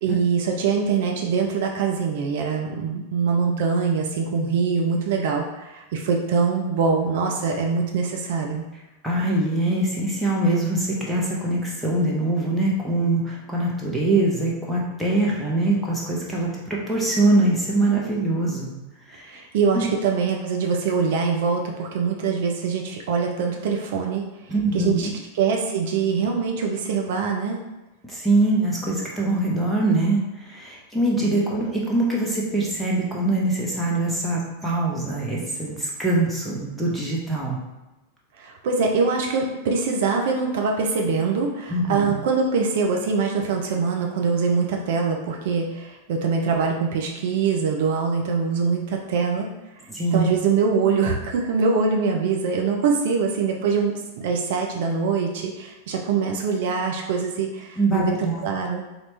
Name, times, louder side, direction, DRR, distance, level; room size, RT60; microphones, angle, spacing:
voice 1, 0.0-8.6 19.3-24.2 24.7-25.1 25.3-27.6 38.4-49.5 50.1-58.8, right 5 dB, 55° right, 1 dB, 0.6 m, -23 dB
voice 2, 9.0-18.7 19.1-19.4 19.7-19.9 24.5-25.1 28.0-37.6 41.7-42.2 49.9-50.3 57.8-58.4, right 2 dB, ahead, -5 dB, 1.1 m, -23 dB
4.0 x 3.0 x 3.3 m, 1.1 s
figure-of-eight pair, 90°, 0 cm